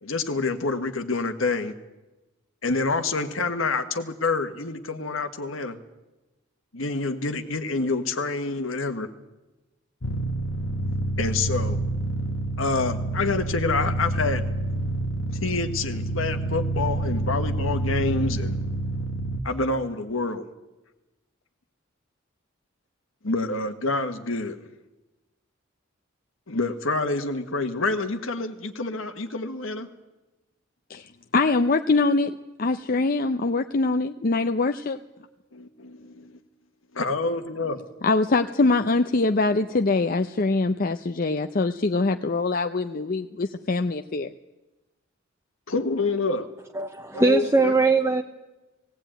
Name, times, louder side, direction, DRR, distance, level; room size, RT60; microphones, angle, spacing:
voice 1, 0.0-1.8 2.6-5.8 6.7-9.1 11.2-11.8 12.6-14.4 15.4-18.6 19.4-20.4 23.2-24.6 26.5-29.9 35.5-36.4 36.9-37.8 45.7-46.5 47.1-47.8, left 3 dB, 85° left, 7 dB, 1.5 m, -27 dB
sound 1, 10.0-19.4, right 2 dB, 65° left, 1.3 m, -28 dB
voice 2, 30.9-35.0 38.0-44.3, left 3 dB, 45° left, 6 dB, 0.6 m, -23 dB
voice 3, 46.7-48.2, right 3 dB, 15° right, 4 dB, 0.8 m, -21 dB
17.5 x 17.5 x 9.1 m, 1.1 s
head